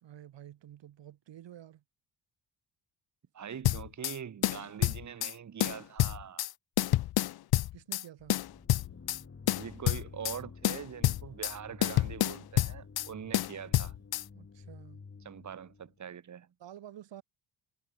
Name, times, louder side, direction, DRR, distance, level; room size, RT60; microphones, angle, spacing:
voice 1, 0.0-1.8 7.7-8.4 14.3-15.0 16.6-17.2, right 11 dB, 70° right, 4.2 m, -50 dB
voice 2, 3.3-6.5 9.6-13.9 15.2-16.5, right 8 dB, 40° right, 1.6 m, -43 dB
sound 1, 3.6-4.2 4.4-5.3 5.6-6.5 6.8-8.0 8.3-9.2 9.5-10.4 10.6-11.6 11.8-13.1 13.3-14.2, left 14 dB, 55° left, 0.6 m, -28 dB
sound 2, 8.2-16.0, left 5 dB, 30° left, 6.2 m, -52 dB
cardioid pair, 110°, 45 cm